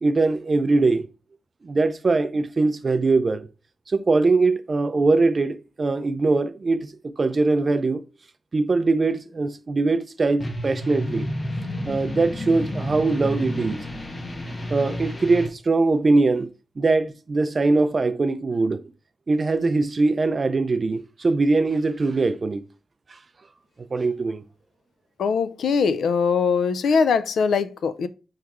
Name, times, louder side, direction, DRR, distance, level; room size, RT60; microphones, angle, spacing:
voice 1, 0.0-1.0 1.6-3.5 3.9-6.9 7.2-8.0 8.5-11.3 11.9-13.8 14.7-16.5 16.8-18.8 19.3-22.6 23.9-24.4, right 3 dB, 30° right, 0.3 m, -21 dB
sound 1, 10.4-15.5, left 1 dB, 20° left, 0.6 m, -30 dB
voice 2, 25.2-28.1, left 5 dB, 85° left, 0.3 m, -21 dB
4.7 x 3.1 x 3.5 m
wide cardioid pair, 180°, 0 cm